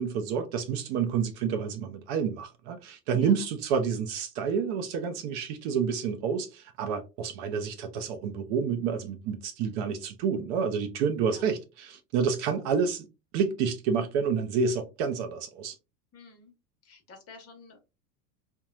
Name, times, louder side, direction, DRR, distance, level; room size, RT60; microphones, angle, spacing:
voice 1, 0.0-13.1 13.3-15.8, right 6 dB, 45° right, 0.5 m, -29 dB
voice 2, 16.1-16.5 16.8-17.8, left 4 dB, 30° left, 0.9 m, -51 dB
2.9 x 2.2 x 2.3 m
hypercardioid pair, 100°, 48 cm